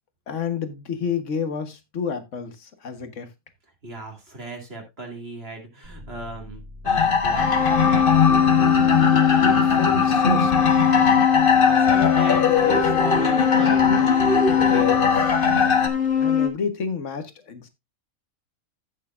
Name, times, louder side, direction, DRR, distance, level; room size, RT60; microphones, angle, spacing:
voice 1, 0.3-3.3 9.4-11.2 16.2-17.7, left 6 dB, 60° left, 1.6 m, -30 dB
voice 2, 3.8-8.7 11.3-15.3, right 1 dB, 45° right, 2.5 m, -37 dB
sound 1, 5.8-8.6, left 2 dB, 70° right, 3.2 m, -43 dB
sound 2, 6.9-15.9, left 5 dB, 40° left, 1.2 m, -20 dB
sound 3, 7.4-16.5, left 8 dB, 80° left, 1.9 m, -22 dB
15.0 x 6.6 x 2.5 m
omnidirectional pair, 1.5 m